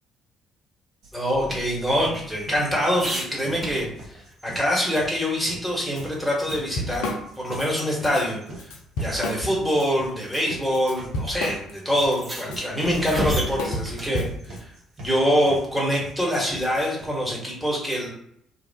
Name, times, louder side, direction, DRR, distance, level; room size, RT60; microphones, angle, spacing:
sound 1, 1.0-17.0, right 2 dB, 55° right, 0.8 m, -42 dB
voice 1, 1.1-8.4 9.0-14.7 15.0-18.1, equal, ahead, -5 dB, 1.2 m, -25 dB
sound 2, 1.3-4.3 4.7-4.8 5.1-6.6 6.9-7.1 7.5-7.6 8.7-8.8 9.7-9.9 10.9-11.1 11.3-11.4 12.0-14.2 16.5-16.9, equal, 25° right, 0.8 m, -35 dB
Drum kit / Drum, 6.0-6.1 6.4-7.7 8.0-8.2 8.6-9.9 10.2-14.6, left 1 dB, 65° left, 0.4 m, -31 dB
2.7 x 2.3 x 2.3 m, 0.70 s
figure-of-eight pair, 45°, 0 cm